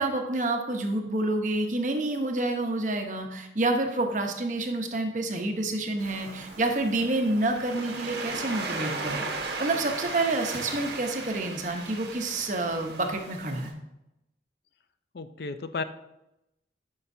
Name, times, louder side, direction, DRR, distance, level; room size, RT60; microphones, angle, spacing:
voice 1, 0.0-13.7, right 2 dB, 45° right, 4 dB, 0.9 m, -28 dB
Waves surf, 6.0-13.7, right 3 dB, 70° right, 1.2 m, -36 dB
voice 2, 15.1-15.8, left 4 dB, 60° left, 11 dB, 0.4 m, -33 dB
11.0 x 5.6 x 2.7 m, 0.89 s
head